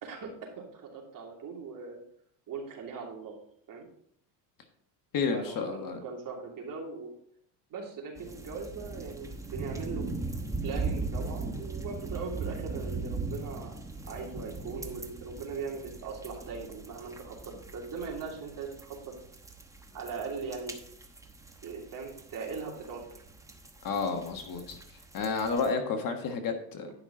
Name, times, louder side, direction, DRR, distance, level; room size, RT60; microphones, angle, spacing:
voice 1, 0.0-2.0 2.5-3.3 3.7-3.9 5.3-7.1 7.7-10.1 10.6-19.0 19.9-20.7 21.6-23.2 26.8-26.9, right 5 dB, 45° right, -1 dB, 2.9 m, -40 dB
voice 2, 5.1-6.0 23.8-24.8 25.1-26.9, left 5 dB, 45° left, 5 dB, 1.5 m, -31 dB
sound 1, 8.2-25.7, right 3 dB, 5° right, 1.0 m, -39 dB
10.5 x 5.8 x 3.8 m, 0.67 s
supercardioid pair, 95°, 47 cm